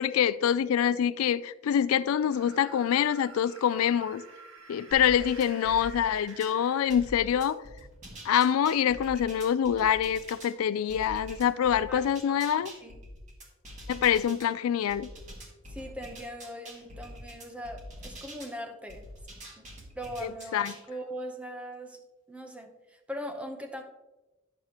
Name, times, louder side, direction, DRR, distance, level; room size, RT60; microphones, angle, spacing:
voice 1, 0.0-4.2 4.7-7.6 8.2-12.7 13.9-15.1 20.5-20.7, left 9 dB, 85° left, 0.3 m, -25 dB
sound 1, 2.2-7.5, right 4 dB, 90° right, 1.1 m, -49 dB
sound 2, 4.9-6.6 6.9-10.5 10.9-14.5 14.9-18.5 18.9-20.8, equal, 35° right, 1.6 m, -45 dB
voice 2, 11.9-12.4 12.8-13.0 15.7-19.2 19.6-23.8, equal, 5° right, 0.7 m, -41 dB
9.7 x 6.7 x 2.9 m
head